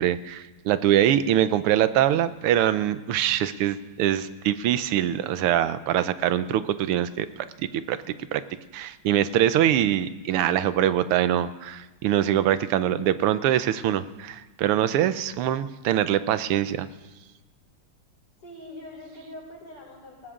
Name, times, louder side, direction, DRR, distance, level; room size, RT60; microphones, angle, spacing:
voice 1, 0.0-7.3 7.6-8.0 8.3-8.4 8.7-16.9, right 11 dB, 85° right, 13 dB, 1.6 m, -23 dB
voice 2, 18.4-20.3, left 1 dB, 90° left, -4 dB, 7.1 m, -43 dB
19.5 x 19.0 x 3.7 m, 1.2 s
omnidirectional pair, 2.4 m